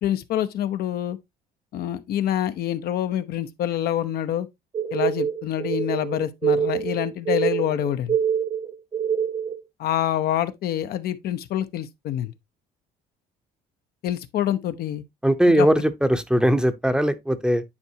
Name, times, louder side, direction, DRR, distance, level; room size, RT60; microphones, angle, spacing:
voice 1, 0.0-1.2 1.7-4.5 4.9-8.2 9.8-12.3 14.0-15.0 15.6-15.7, left 11 dB, 65° left, 0.7 m, -26 dB
sound 1, 4.7-9.6, right 8 dB, 35° right, 1.0 m, -25 dB
voice 2, 15.2-17.6, equal, 5° right, 0.7 m, -20 dB
9.7 x 4.6 x 2.8 m
cardioid pair, 110°, 17 cm